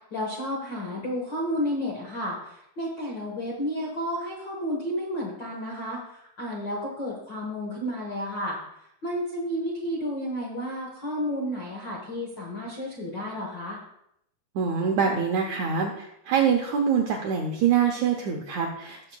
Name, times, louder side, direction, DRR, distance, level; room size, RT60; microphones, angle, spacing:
voice 1, 0.1-8.6 9.0-13.8, equal, 65° left, -3 dB, 1.1 m, -31 dB
voice 2, 14.5-19.2, right 7 dB, 80° right, 1 dB, 1.7 m, -25 dB
18.5 x 6.9 x 2.3 m, 0.79 s
omnidirectional pair, 4.4 m